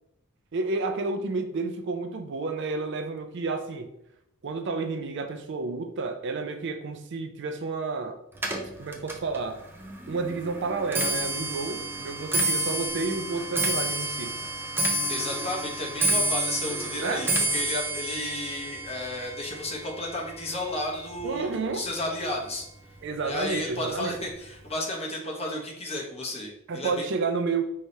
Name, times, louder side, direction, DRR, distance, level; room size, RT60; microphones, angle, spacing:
voice 1, 0.5-3.9 4.4-8.2 8.8-9.6 10.1-14.4 17.0-17.2 21.2-21.9 23.0-24.1 26.7-27.6, right 4 dB, 60° right, 6 dB, 0.5 m, -30 dB
Clock, 8.4-21.7 22.0-22.5 23.3-23.4 23.7-24.1 24.4-24.5, right 1 dB, 10° right, 0.5 m, -30 dB
voice 2, 15.1-22.6 23.2-27.1, left 1 dB, 30° left, -1 dB, 0.9 m, -33 dB
4.6 x 3.2 x 2.7 m, 0.78 s
head